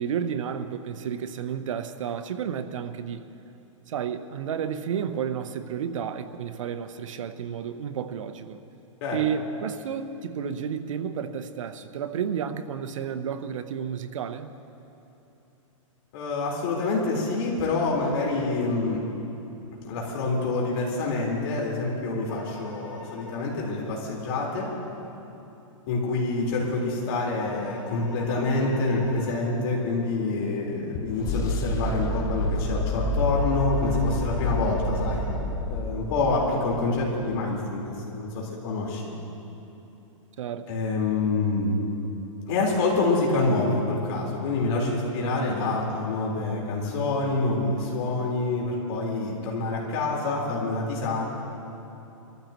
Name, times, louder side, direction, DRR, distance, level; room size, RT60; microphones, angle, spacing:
voice 1, 0.0-3.3 3.9-8.6 9.1-14.5 40.4-40.8, right 8 dB, 70° right, 10 dB, 0.9 m, -31 dB
voice 2, 16.1-19.0 19.8-24.7 25.9-35.2 35.7-39.0 40.7-41.8 42.5-51.2, left 3 dB, 50° left, -3 dB, 4.3 m, -27 dB
sound 1, 22.2-23.4 27.4-29.4 33.4-35.4, left 2 dB, 90° left, 3.7 m, -45 dB
sound 2, 29.0-37.2, left 2 dB, 20° left, 0.7 m, -29 dB
25.0 x 14.5 x 3.1 m, 3.0 s
hypercardioid pair, 145°, 17 cm